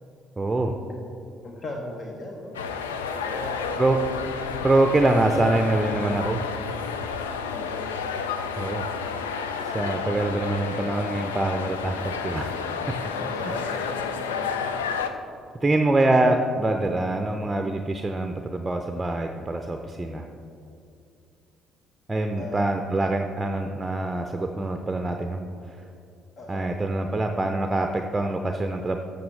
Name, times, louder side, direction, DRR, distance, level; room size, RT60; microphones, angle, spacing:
voice 1, 0.4-0.8 3.8-4.0 4.6-6.4 8.6-8.9 9.6-12.6 13.0-13.1 13.4-13.6 15.6-20.3 22.1-25.4 25.7-25.8 26.5-29.0, right 2 dB, 20° right, 5 dB, 0.6 m, -24 dB
voice 2, 1.4-2.5 3.2-3.8 7.5-7.9 13.1-14.7 22.4-22.6 26.4-26.7, left 1 dB, 45° left, 0 dB, 1.0 m, -37 dB
sound 1, 2.5-15.1, left 6 dB, 80° left, 0.4 m, -31 dB
14.0 x 6.7 x 3.3 m, 2.6 s
figure-of-eight pair, 50°, 0 cm